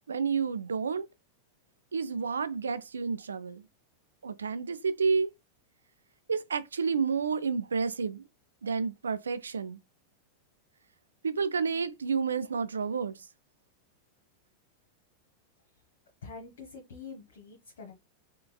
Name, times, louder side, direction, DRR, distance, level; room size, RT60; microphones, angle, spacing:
voice 1, 0.1-1.1 1.9-3.6 4.2-5.3 6.3-8.2 8.6-9.8 11.2-13.2, right 5 dB, 70° right, 0.4 m, -30 dB
voice 2, 16.2-17.9, left 5 dB, 60° left, 1.0 m, -45 dB
4.0 x 3.2 x 2.3 m
figure-of-eight pair, 90°, 0 cm